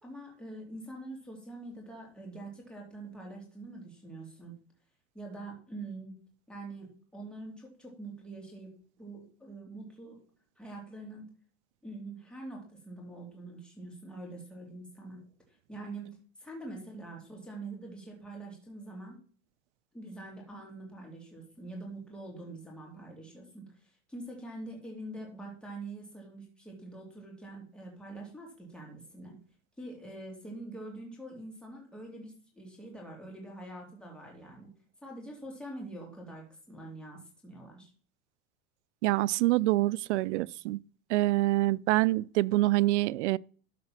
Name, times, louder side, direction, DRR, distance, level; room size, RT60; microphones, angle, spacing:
voice 1, 0.0-4.5 5.1-6.2 6.5-8.7 9.0-10.2 10.6-11.3 11.8-15.2 15.7-19.2 19.9-29.4 29.8-34.7 35.0-37.9, right 2 dB, 5° left, 2.8 m, -44 dB
voice 2, 39.0-40.8 41.1-43.4, right 18 dB, 70° right, 0.5 m, -26 dB
12.5 x 4.3 x 5.9 m
supercardioid pair, 170°, 36 cm